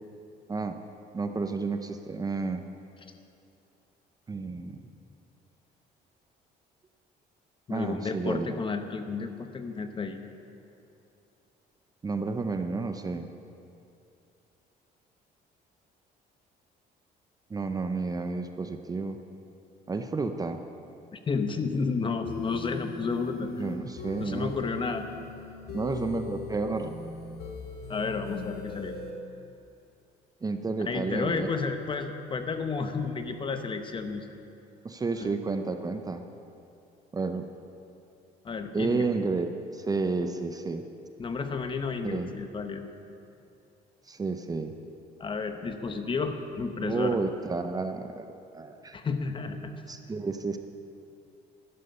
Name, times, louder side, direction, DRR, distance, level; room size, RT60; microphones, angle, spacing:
voice 1, 1.1-2.6 4.3-4.8 7.7-8.6 12.0-13.3 17.5-19.2 19.9-20.6 23.6-24.5 25.7-26.9 30.4-31.5 34.8-36.2 37.1-37.5 38.7-40.8 42.0-42.3 44.0-44.7 46.8-48.3 48.5-49.0 49.9-50.6, right 4 dB, 20° right, 7 dB, 0.6 m, -31 dB
voice 2, 7.7-10.2 21.1-23.6 24.2-25.1 27.9-28.9 30.8-34.3 35.2-35.3 38.4-39.1 41.2-42.8 45.2-47.2 48.9-49.7, left 4 dB, 30° left, 7 dB, 0.9 m, -31 dB
sound 1, 22.2-29.1, left 4 dB, 70° left, 1.9 m, -39 dB
12.0 x 11.0 x 5.5 m, 2.7 s
cardioid pair, 110°, 17 cm